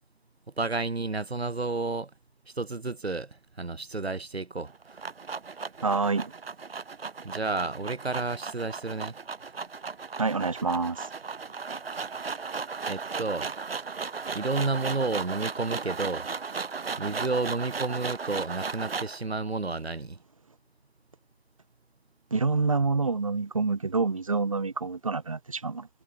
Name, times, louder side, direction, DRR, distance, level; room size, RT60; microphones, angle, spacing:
voice 1, 0.6-2.1 2.6-5.1 7.2-9.1 12.9-13.5 14.3-16.3 17.0-20.2, right 3 dB, 85° right, 3.9 m, -31 dB
sound 1, 4.6-19.2, right 5 dB, 70° right, 1.2 m, -36 dB
voice 2, 5.8-6.3 10.2-11.1 22.3-25.9, right 4 dB, 35° right, 0.7 m, -27 dB
figure-of-eight pair, 170°, 31 cm